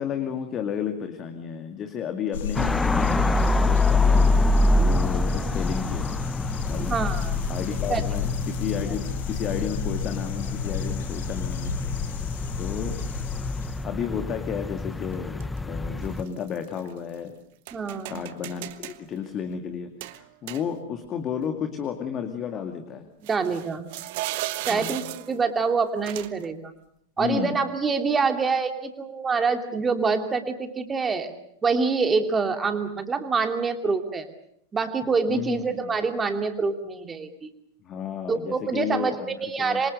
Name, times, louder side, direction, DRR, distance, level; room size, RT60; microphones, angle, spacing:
voice 1, 0.0-4.3 4.8-6.2 6.6-7.0 7.5-11.7 12.6-13.0 13.8-17.4 18.1-23.1 24.7-25.1 27.2-27.6 35.3-35.9 37.8-39.8, left 7 dB, 30° left, 7 dB, 2.3 m, -32 dB
sound 1, 2.3-13.8, left 8 dB, 60° left, 2.2 m, -33 dB
sound 2, 2.5-16.2, left 2 dB, 10° left, 1.0 m, -26 dB
voice 2, 6.8-7.4 7.9-8.0 17.7-18.2 23.3-23.9 24.7-26.7 27.2-31.3 31.6-34.3 34.7-37.5 38.3-39.9, right 4 dB, 15° right, 6 dB, 2.9 m, -26 dB
sound 3, 9.5-9.6 10.6-10.7 11.6-11.9 15.1-15.6 16.0-17.2 17.7-19.0 20.0-21.1 21.4-21.5 23.2-25.4 26.0-26.5, right 17 dB, 50° right, 1.3 m, -36 dB
27.5 x 24.5 x 6.6 m, 0.70 s
figure-of-eight pair, 90°, 0 cm